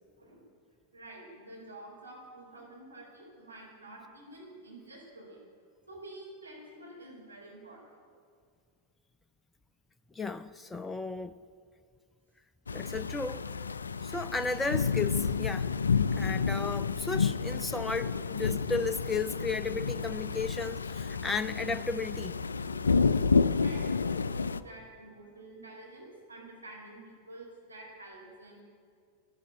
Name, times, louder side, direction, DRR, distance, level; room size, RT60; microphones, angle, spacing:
voice 1, 0.9-5.4 5.9-8.0 23.0-23.3 23.6-28.6, right 1 dB, 80° right, 4.7 m, -49 dB
voice 2, 10.1-11.3 12.7-13.4 14.0-15.7 16.1-22.4, left 4 dB, 10° left, 0.5 m, -34 dB
sound 1, 12.7-24.6, left 5 dB, 75° left, 0.4 m, -30 dB
12.5 x 11.5 x 9.9 m
figure-of-eight pair, 90°, 0 cm